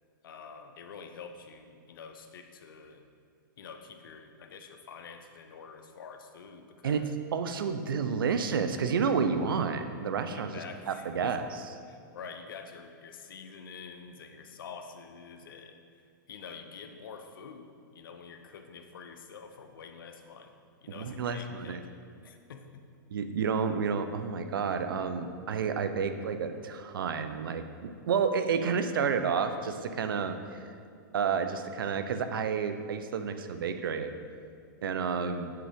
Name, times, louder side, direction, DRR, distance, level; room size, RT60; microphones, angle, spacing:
voice 1, 0.2-3.1 3.6-7.1 10.3-11.4 11.9-20.5 20.8-21.9 22.2-22.8, left 5 dB, 85° left, 6 dB, 0.6 m, -47 dB
voice 2, 6.8-10.6 10.9-11.4 20.9-21.8 23.1-30.6 31.1-34.1 34.8-35.5, right 6 dB, 90° right, 8 dB, 0.5 m, -30 dB
7.4 x 3.6 x 3.5 m, 2.3 s
hypercardioid pair, 135°, 11 cm